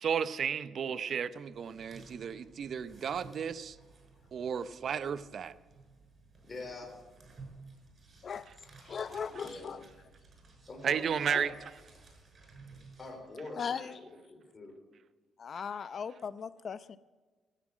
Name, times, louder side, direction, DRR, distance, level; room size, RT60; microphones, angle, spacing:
voice 1, 0.0-3.8 4.3-5.5 10.8-11.5, right 7 dB, 55° right, 14 dB, 0.7 m, -33 dB
sound 1, 1.4-13.1, right 3 dB, 40° right, 6.3 m, -56 dB
voice 2, 6.4-6.9 9.4-9.8 10.7-11.5 13.0-14.8, left 2 dB, 35° left, 2 dB, 4.5 m, -45 dB
voice 3, 8.8-9.9 13.6-14.1 15.4-17.0, left 6 dB, 50° left, 14 dB, 0.7 m, -38 dB
17.0 x 10.0 x 6.2 m, 1.3 s
cardioid pair, 90°, 0 cm